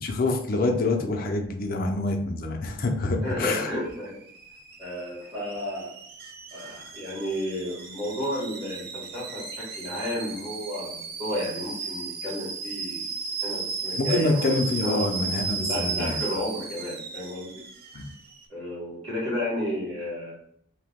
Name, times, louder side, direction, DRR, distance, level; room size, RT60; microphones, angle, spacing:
voice 1, 0.0-3.7 13.9-16.2 17.9-18.1, left 2 dB, 45° left, 2 dB, 0.5 m, -26 dB
voice 2, 3.2-4.2 4.8-5.9 6.5-13.1 13.4-15.1 15.6-17.6 18.5-20.3, left 1 dB, 30° right, -7 dB, 1.5 m, -32 dB
Alarm / Boiling, 3.6-18.4, right 5 dB, 50° right, 0.4 m, -35 dB
2.7 x 2.2 x 3.5 m, 0.67 s
head